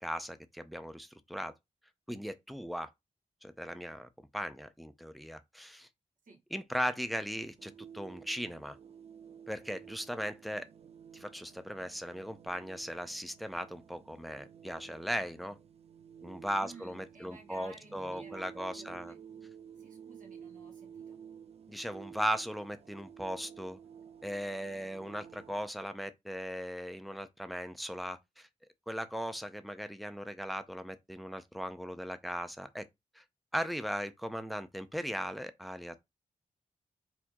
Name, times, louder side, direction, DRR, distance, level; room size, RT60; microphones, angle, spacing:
voice 1, 0.0-1.5 2.1-2.9 3.4-5.9 6.5-8.8 9.5-10.7 11.1-15.6 16.2-19.2 21.7-23.8 24.2-28.5 28.9-32.8 33.2-33.3 33.5-35.9, equal, ahead, 0.5 m, -38 dB
sound 1, 7.1-25.7, right 8 dB, 50° right, 0.5 m, -53 dB
voice 2, 16.6-19.2 19.8-21.2, right 2 dB, 75° right, 1.3 m, -55 dB
4.3 x 2.8 x 2.9 m
wide cardioid pair, 90°, 14 cm